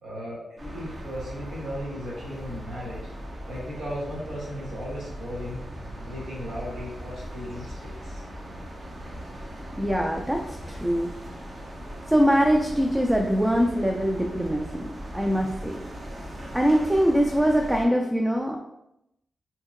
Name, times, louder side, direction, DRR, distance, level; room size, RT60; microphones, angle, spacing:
voice 1, 0.0-3.0 3.5-5.6 6.0-8.2, equal, 85° right, -6 dB, 1.2 m, -36 dB
sound 1, 0.6-17.8, equal, 45° right, 0.7 m, -39 dB
voice 2, 9.8-11.1 12.1-15.8 16.5-18.6, equal, 10° right, 1 dB, 0.4 m, -23 dB
2.7 x 2.7 x 2.5 m, 0.83 s
cardioid pair, 55°, 0 cm